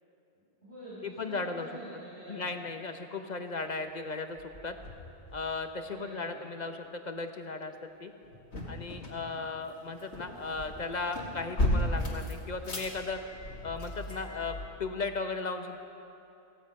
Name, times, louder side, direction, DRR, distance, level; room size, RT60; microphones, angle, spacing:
voice 1, 0.3-2.6 5.8-6.4 9.8-10.0, equal, 80° right, -11 dB, 4.8 m, -47 dB
voice 2, 1.0-1.7 2.3-4.4 4.6-4.8 5.3-8.1 8.7-13.2 13.6-15.8, left 3 dB, 45° left, 7 dB, 0.8 m, -36 dB
sound 1, 3.6-3.9 4.4-5.6 8.2-14.7, left 1 dB, 80° left, 2.2 m, -35 dB
15.5 x 15.5 x 5.3 m, 2.9 s
omnidirectional pair, 1.1 m